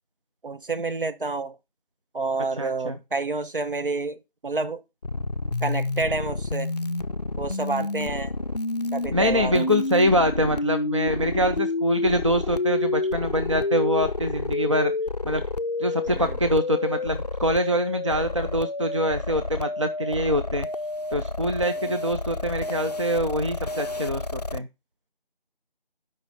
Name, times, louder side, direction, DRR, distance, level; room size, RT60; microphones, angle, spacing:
voice 1, 0.4-1.6 2.1-4.8 5.6-6.7 7.4-8.3 8.9-9.7 16.1-16.4 21.8-22.0, right 3 dB, 65° right, 1.1 m, -29 dB
voice 2, 2.6-3.0 9.1-14.9 15.2-15.4 15.8-20.7 21.1-24.7, equal, 35° right, 0.5 m, -24 dB
sound 1, 5.0-24.6, left 2 dB, 45° left, 0.4 m, -29 dB
9.0 x 5.3 x 5.4 m
figure-of-eight pair, 160°, 29 cm